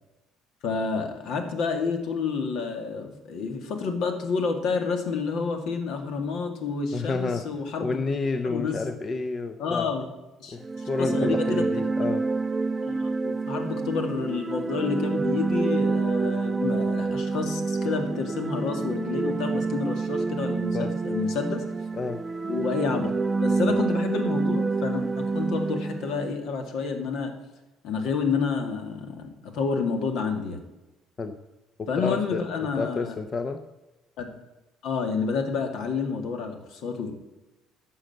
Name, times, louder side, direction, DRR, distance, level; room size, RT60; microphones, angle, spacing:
voice 1, 0.6-8.0 8.4-8.8 9.6-10.1 10.4-11.6 12.0-12.2 12.8-21.6 22.5-23.1 23.4-27.3 27.8-30.6 31.9-33.1 34.2-34.3 34.8-37.1, left 5 dB, 70° left, 6 dB, 2.1 m, -29 dB
voice 2, 6.9-7.4 7.8-9.9 10.5-12.2 20.7-20.9 21.9-22.2 31.2-31.4 31.8-32.5 32.8-33.6, left 4 dB, 30° left, 8 dB, 0.7 m, -30 dB
sound 1, 10.6-26.3, right 3 dB, 20° right, 0.3 m, -27 dB
11.5 x 6.6 x 7.8 m, 1.1 s
cardioid pair, 125°, 0 cm